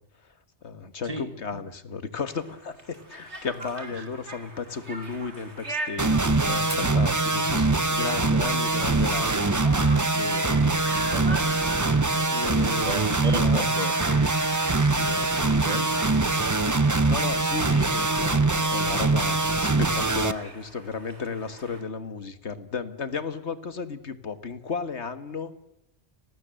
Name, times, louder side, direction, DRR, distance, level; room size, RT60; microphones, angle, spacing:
voice 1, 0.6-9.5 10.1-10.6 12.3-13.8 14.9-15.3 17.1-25.6, left 5 dB, 80° left, 1.9 m, -34 dB
Conversation, 2.3-21.8, right 2 dB, 85° right, 4.0 m, -41 dB
sound 1, 6.0-20.3, right 3 dB, 20° right, 0.8 m, -23 dB
Fire, 6.7-16.4, equal, 15° left, 5.9 m, -50 dB
voice 2, 10.5-11.5 12.1-14.0 15.6-16.0, right 2 dB, 35° right, 1.5 m, -34 dB
30.0 x 19.5 x 7.7 m
omnidirectional pair, 1.1 m